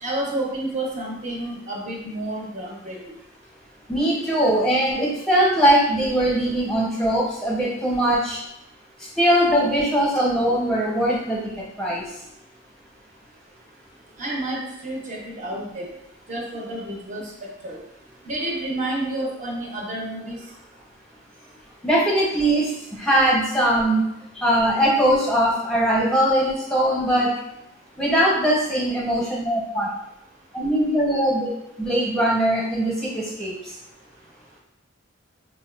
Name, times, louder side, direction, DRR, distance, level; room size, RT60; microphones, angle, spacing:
voice 1, 0.0-3.0 14.2-15.9 16.3-17.3 17.6-17.8 18.3-20.4, right 1 dB, 35° right, -2 dB, 0.5 m, -30 dB
voice 2, 3.9-8.4 9.2-12.0 19.2-19.3 21.8-24.1 24.4-27.3 28.0-29.9 30.5-31.5 31.8-33.5, right 1 dB, 5° left, -5 dB, 0.7 m, -21 dB
4.3 x 2.1 x 2.3 m, 0.83 s
head